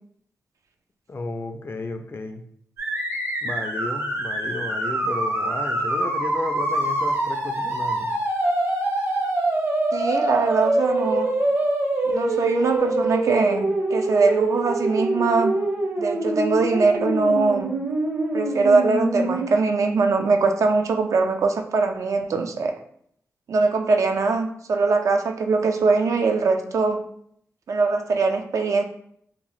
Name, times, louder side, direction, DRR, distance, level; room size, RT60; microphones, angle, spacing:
voice 1, 1.1-2.4 3.4-8.1, left 3 dB, 45° left, 7 dB, 0.4 m, -33 dB
sound 1, 2.8-19.5, right 1 dB, 50° right, 0.7 m, -25 dB
voice 2, 9.9-11.3 12.1-15.6 16.0-17.7 18.3-22.7 23.5-27.1 27.7-28.8, right 4 dB, 65° right, 5 dB, 0.3 m, -22 dB
2.7 x 2.0 x 3.0 m, 0.67 s
cardioid pair, 45°, 6 cm